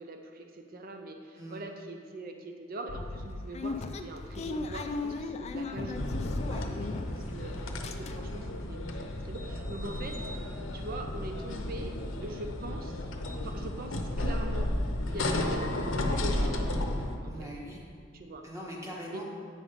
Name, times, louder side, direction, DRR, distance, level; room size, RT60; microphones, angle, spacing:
voice 1, 0.0-6.0 7.1-10.2 10.7-13.1 13.4-14.7 15.1-16.9 17.2-17.5 18.1-18.4 19.1-19.3, right 1 dB, 50° right, 4 dB, 0.6 m, -42 dB
sound 1, 2.9-7.4 7.6-8.5 8.9-9.0 9.2-9.4, left 3 dB, 35° left, 0.4 m, -37 dB
sound 2, 5.9-17.2, left 1 dB, 80° left, 0.8 m, -33 dB
voice 2, 17.3-17.8 18.4-19.3, equal, 15° right, -4 dB, 1.4 m, -42 dB
8.4 x 5.3 x 5.0 m, 2.2 s
head